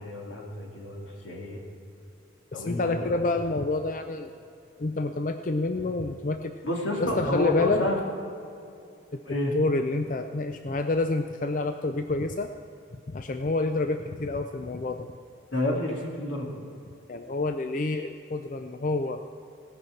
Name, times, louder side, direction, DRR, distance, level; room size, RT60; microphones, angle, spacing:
voice 1, 0.0-1.6 2.5-3.2 6.6-8.0 9.3-9.5 15.5-16.6, left 1 dB, 85° left, -1 dB, 2.6 m, -30 dB
voice 2, 2.5-4.3 4.8-6.5 7.0-7.8 9.1-9.2 9.5-12.5 13.1-15.1 17.1-19.2, left 2 dB, 40° left, 7 dB, 0.4 m, -28 dB
17.5 x 6.1 x 7.7 m, 2.6 s
head